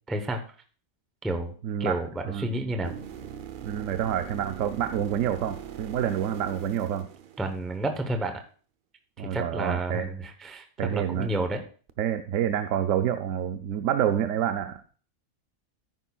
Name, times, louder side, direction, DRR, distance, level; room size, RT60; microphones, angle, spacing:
voice 1, 0.1-0.4 1.2-1.5 1.8-2.9 7.4-8.4 9.2-10.6 10.9-11.6, right 2 dB, ahead, 6 dB, 0.6 m, -30 dB
voice 2, 1.6-2.0 2.3-2.5 3.6-7.1 9.2-10.0 10.8-11.3 12.0-14.8, right 10 dB, 70° right, 8 dB, 0.9 m, -28 dB
sound 1, 2.8-7.9 11.9-12.0, right 9 dB, 55° right, 0.6 m, -41 dB
13.0 x 9.9 x 2.3 m, 0.41 s
omnidirectional pair, 1.5 m